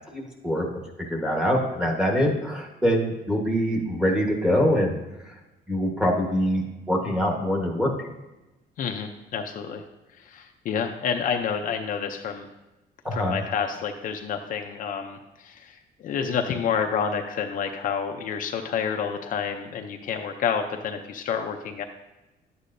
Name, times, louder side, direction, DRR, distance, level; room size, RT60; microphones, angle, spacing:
voice 1, 0.1-0.7 1.1-5.0 5.2-5.3 5.7-8.1 13.0-13.4, equal, 5° right, -1 dB, 1.3 m, -24 dB
voice 2, 8.8-9.8 10.2-12.5 13.1-21.8, left 7 dB, 50° left, 3 dB, 0.6 m, -29 dB
11.0 x 8.2 x 2.6 m, 1.0 s
cardioid pair, 160°, 18 cm